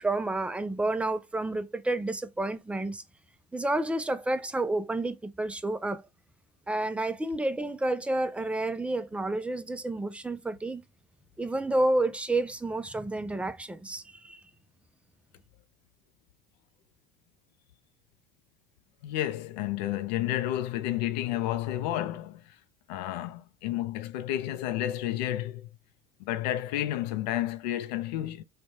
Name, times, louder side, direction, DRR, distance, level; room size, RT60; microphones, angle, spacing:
voice 1, 0.0-3.0 3.5-6.0 6.7-10.8 11.4-14.4, right 2 dB, 5° right, 0.4 m, -30 dB
voice 2, 19.0-22.5 22.9-25.7 26.2-28.4, left 13 dB, 90° left, 0.5 m, -31 dB
3.1 x 2.2 x 2.7 m
supercardioid pair, 95°, 21 cm